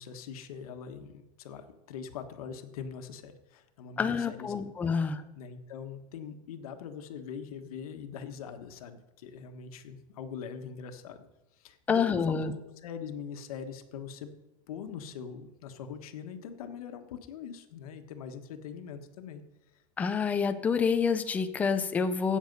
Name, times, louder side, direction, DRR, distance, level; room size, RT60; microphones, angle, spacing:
voice 1, 0.0-4.7 5.4-11.3 11.6-12.5 12.8-14.3 14.7-19.4, left 7 dB, 90° left, 7 dB, 1.4 m, -42 dB
voice 2, 4.0-5.2 11.9-12.5 20.0-22.4, left 6 dB, 10° left, 9 dB, 0.4 m, -27 dB
16.0 x 6.6 x 5.4 m, 0.99 s
supercardioid pair, 180°, 18 cm